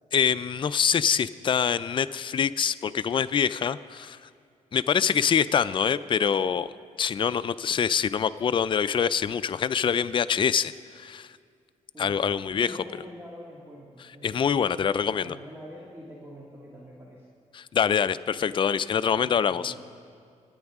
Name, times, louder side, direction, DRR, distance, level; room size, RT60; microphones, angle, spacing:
voice 1, 0.1-4.3 4.7-6.7 7.0-11.3 12.0-12.8 14.2-15.4 17.5-19.8, left 7 dB, 35° left, 13 dB, 0.4 m, -25 dB
voice 2, 5.0-5.4 11.9-12.2 12.5-17.3 19.1-19.8, equal, 20° right, -4 dB, 2.0 m, -45 dB
26.0 x 8.8 x 3.6 m, 2.3 s
cardioid pair, 85°, 14 cm